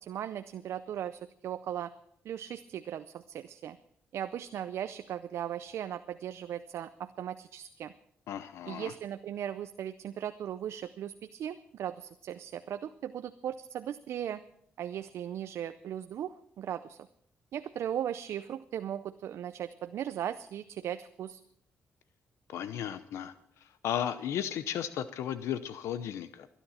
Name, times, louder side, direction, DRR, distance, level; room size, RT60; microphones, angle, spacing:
voice 1, 0.0-1.9 2.2-3.8 4.1-7.9 8.7-14.4 14.8-17.0 17.5-21.4, right 10 dB, 75° right, 10 dB, 0.5 m, -38 dB
voice 2, 8.3-8.9 22.5-23.3 23.6-26.5, left 10 dB, 85° left, 13 dB, 0.7 m, -35 dB
22.0 x 10.0 x 4.3 m, 0.68 s
supercardioid pair, 60°, 5 cm